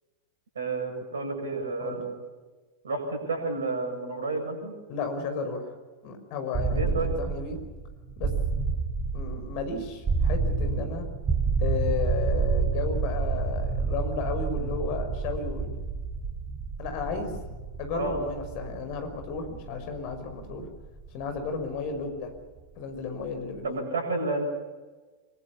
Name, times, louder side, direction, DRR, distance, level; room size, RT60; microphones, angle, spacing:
voice 1, 0.5-2.2 2.8-4.7 6.7-7.1 17.9-18.2 21.9-22.1 23.6-24.4, right 3 dB, 65° right, 4 dB, 7.9 m, -31 dB
voice 2, 4.9-5.7 6.0-7.6 8.2-8.3 9.1-11.1 11.6-15.7 16.8-17.4 17.8-20.7 21.1-22.3 22.8-23.8, left 5 dB, 45° left, 7 dB, 5.9 m, -33 dB
sound 1, 6.5-22.4, right 4 dB, 20° right, 4.8 m, -29 dB
25.5 x 24.0 x 7.2 m, 1.3 s
figure-of-eight pair, 90°, 0 cm